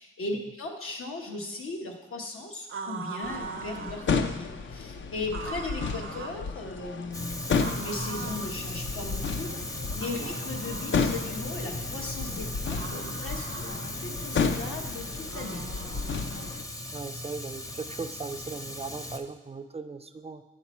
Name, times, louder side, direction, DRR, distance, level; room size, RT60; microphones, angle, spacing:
voice 1, 0.0-15.6, left 3 dB, 85° left, 1 dB, 1.1 m, -37 dB
sound 1, 2.7-4.1 5.3-6.4 7.6-8.6 9.9-11.3 12.7-13.9 15.3-16.6, right 5 dB, 75° right, 0.6 m, -41 dB
sound 2, 3.2-16.6, left 5 dB, 65° left, 0.5 m, -33 dB
Fire, 7.1-19.2, left 1 dB, 15° left, 0.6 m, -37 dB
voice 2, 16.9-20.4, right 4 dB, 30° right, 10 dB, 0.3 m, -38 dB
7.2 x 5.8 x 4.2 m, 1.1 s
wide cardioid pair, 115°, 21 cm